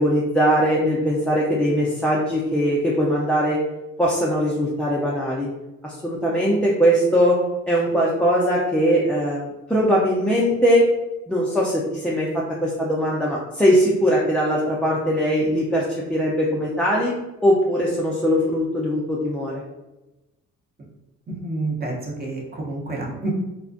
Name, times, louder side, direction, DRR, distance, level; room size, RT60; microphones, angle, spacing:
voice 1, 0.0-3.6 4.0-5.5 5.8-7.4 7.7-10.9 11.3-17.1 17.4-19.5, equal, 5° left, -5 dB, 0.3 m, -20 dB
voice 2, 21.3-23.3, right 2 dB, 30° right, -2 dB, 0.7 m, -29 dB
2.4 x 2.1 x 2.4 m, 1.0 s
cardioid pair, 90°, 30 cm